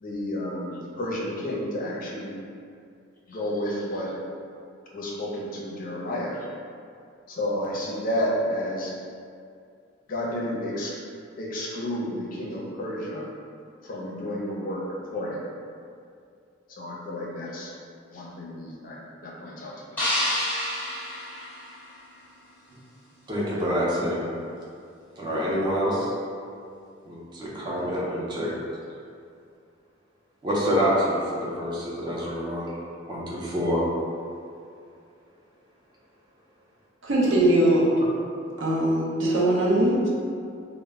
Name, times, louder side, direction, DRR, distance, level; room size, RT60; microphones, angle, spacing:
voice 1, 0.0-2.3 3.3-4.1 4.9-6.4 7.3-8.9 10.1-10.9 11.4-13.3 13.8-14.8 15.1-15.4 16.8-17.7 18.1-20.0, left 1 dB, 45° left, -4 dB, 0.4 m, -31 dB
sound 1, 20.0-22.2, left 1 dB, 10° left, 0.7 m, -29 dB
voice 2, 23.3-24.3 25.2-26.1 27.1-28.5 30.4-32.8 33.1-33.8, equal, 25° right, -6 dB, 0.5 m, -26 dB
voice 3, 37.0-37.8 38.6-40.1, right 1 dB, 70° right, -6 dB, 0.6 m, -21 dB
2.0 x 2.0 x 3.3 m, 2.4 s
head